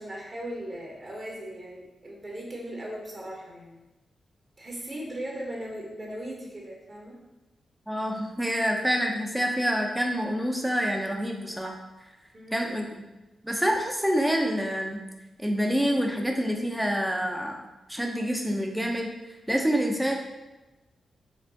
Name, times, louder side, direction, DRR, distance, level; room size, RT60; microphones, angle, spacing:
voice 1, 0.0-3.8 4.6-7.2 12.3-12.8, right 1 dB, 40° right, -2 dB, 1.1 m, -38 dB
voice 2, 7.9-11.7 12.5-12.8 13.4-15.0 15.4-17.6 17.9-19.1 19.5-20.1, equal, 10° right, 1 dB, 0.7 m, -27 dB
4.3 x 2.4 x 2.8 m, 1.1 s
supercardioid pair, 40°, 0 cm